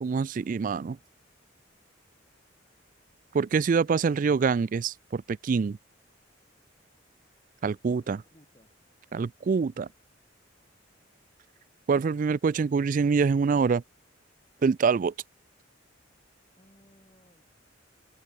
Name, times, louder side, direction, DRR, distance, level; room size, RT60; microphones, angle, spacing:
voice 1, 0.0-1.0 3.3-5.8 7.6-8.2 9.1-9.9 11.9-13.8 14.6-15.1, right 5 dB, 40° right, 0.3 m, -25 dB
voice 2, 7.9-8.7 16.6-17.4, equal, 25° left, 5.3 m, -61 dB
head